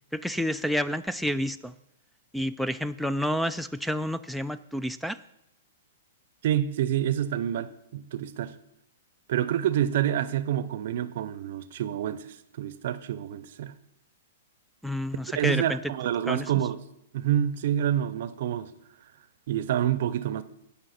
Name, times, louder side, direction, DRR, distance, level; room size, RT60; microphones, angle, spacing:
voice 1, 0.1-1.7 2.3-5.2 14.8-15.8 16.3-16.5, equal, ahead, 0.3 m, -29 dB
voice 2, 6.4-8.5 9.3-12.3 12.6-13.7 15.3-16.8 17.1-18.7 19.5-20.4, right 11 dB, 60° right, 0.6 m, -27 dB
16.5 x 5.6 x 4.3 m
hypercardioid pair, 125°, 0 cm